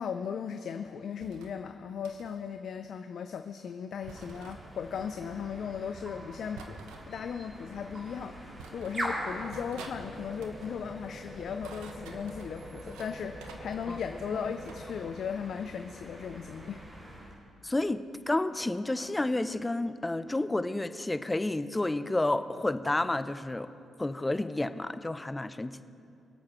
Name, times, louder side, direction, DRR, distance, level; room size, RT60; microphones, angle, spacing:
voice 1, 0.0-6.8 7.1-16.8, left 7 dB, 65° left, 7 dB, 0.5 m, -37 dB
sound 1, 1.2-1.5 2.0-2.4 4.1-4.6 6.6-7.1 8.0-8.1 8.6-9.1 9.5-10.0 10.3-10.7 11.4-13.1 13.4-14.8, right 4 dB, 85° right, 0.9 m, -49 dB
sound 2, 4.0-17.4, right 1 dB, 35° right, 3.2 m, -43 dB
voice 2, 17.6-23.7 24.0-25.9, left 2 dB, 20° left, 12 dB, 0.6 m, -30 dB
25.0 x 8.5 x 3.1 m, 2.5 s
supercardioid pair, 55°, 0 cm